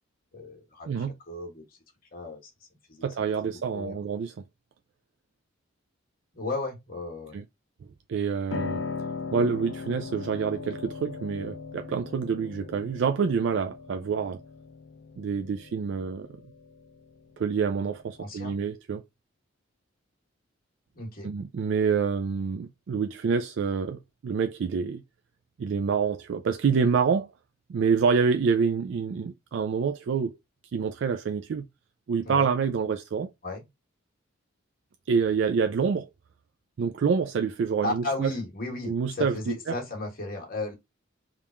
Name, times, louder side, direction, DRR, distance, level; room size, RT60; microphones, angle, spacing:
voice 1, 0.3-1.6 2.1-2.5 2.9-3.1 3.4-4.0 6.3-7.4 18.2-18.6 20.9-21.3 32.2-32.5 33.4-33.6 37.8-40.7, left 2 dB, 45° left, 1.3 m, -35 dB
voice 2, 3.0-4.3 7.3-7.4 8.1-8.8 9.3-14.4 15.2-16.3 17.4-19.0 21.2-25.0 25.6-27.3 27.7-30.4 30.7-31.6 32.1-33.3 35.1-36.1 36.8-38.3 38.9-39.8, right 6 dB, 65° right, 0.3 m, -27 dB
Piano, 8.5-18.4, left 4 dB, 65° left, 0.5 m, -39 dB
3.5 x 2.4 x 4.2 m
head